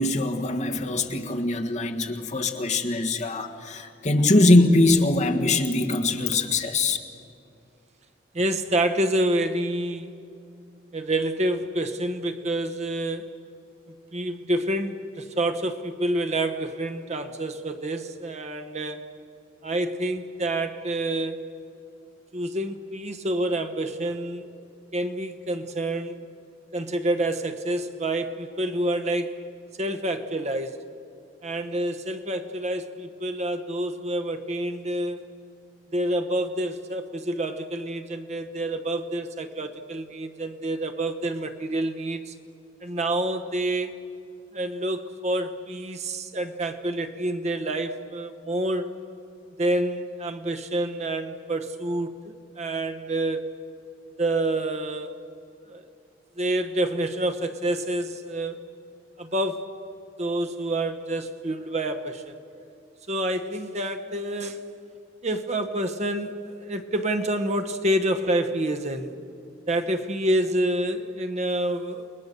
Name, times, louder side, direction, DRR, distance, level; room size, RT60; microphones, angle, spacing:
voice 1, 0.0-7.0, left 2 dB, 40° left, 1.6 m, -22 dB
voice 2, 8.3-10.1 10.9-13.4 14.1-19.0 19.6-21.5 22.3-24.5 24.9-26.2 26.7-29.4 29.8-30.8 31.4-35.2 35.9-42.3 42.8-43.9 44.5-48.9 49.6-53.5 54.2-55.2 55.7-55.9 56.4-58.6 59.2-59.6 60.2-62.6 63.1-64.6 65.2-69.1 69.7-72.1, right 1 dB, 35° right, 1.0 m, -28 dB
29.0 x 21.0 x 6.8 m
head